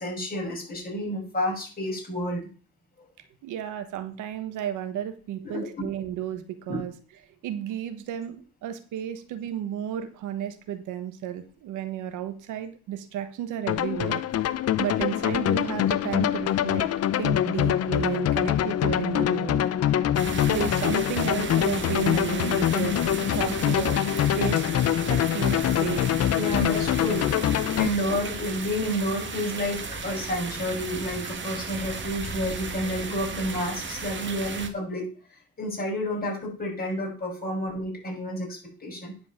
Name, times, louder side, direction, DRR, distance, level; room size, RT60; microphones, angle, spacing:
voice 1, 0.0-2.5 5.4-5.9 6.7-6.8 26.3-35.1 35.6-39.1, equal, 30° left, -2 dB, 6.3 m, -30 dB
voice 2, 3.4-6.9 7.4-14.2 14.8-16.9 17.2-19.7 20.0-23.0 23.3-24.0 24.4-24.7 25.0-26.1, right 10 dB, 90° right, 9 dB, 1.3 m, -33 dB
sound 1, 13.7-27.9, left 11 dB, 55° left, 0.6 m, -24 dB
sound 2, 20.1-34.7, right 4 dB, 40° right, 1.8 m, -35 dB
9.8 x 5.0 x 7.3 m, 0.40 s
cardioid pair, 90°, 30 cm